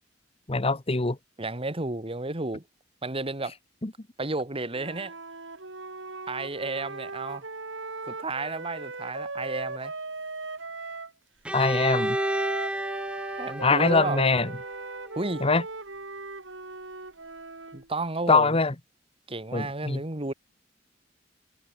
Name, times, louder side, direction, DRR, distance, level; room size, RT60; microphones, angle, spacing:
voice 1, 0.5-1.2 3.8-3.9 11.5-12.2 13.6-14.5 15.4-15.6 18.3-18.7 19.5-20.0, left 4 dB, 30° left, 1.3 m, -23 dB
voice 2, 1.4-2.6 3.0-3.5 4.2-5.1 6.3-7.5 8.1-9.9 13.4-14.2 15.2-15.4 17.7-18.6 19.3-20.3, right 2 dB, 30° right, 2.1 m, -32 dB
Wind instrument woodwind instrument, 4.7-11.1 11.8-17.9, right 3 dB, 75° right, 3.7 m, -38 dB
Bowed string instrument, 11.4-15.3, right 1 dB, 5° right, 1.6 m, -32 dB
head